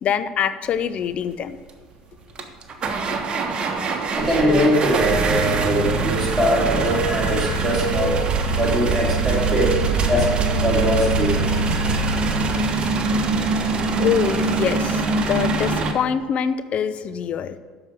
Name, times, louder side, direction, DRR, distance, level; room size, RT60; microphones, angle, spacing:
voice 1, 0.0-1.6 3.8-4.0 14.0-17.6, left 8 dB, 40° left, 12 dB, 0.6 m, -24 dB
sound 1, 1.7-1.8 2.4-15.9, right 3 dB, 35° right, 1.2 m, -23 dB
voice 2, 4.2-9.8 10.1-11.9, equal, ahead, -4 dB, 3.3 m, -22 dB
12.5 x 4.9 x 6.5 m, 1.5 s
figure-of-eight pair, 60°, 3 cm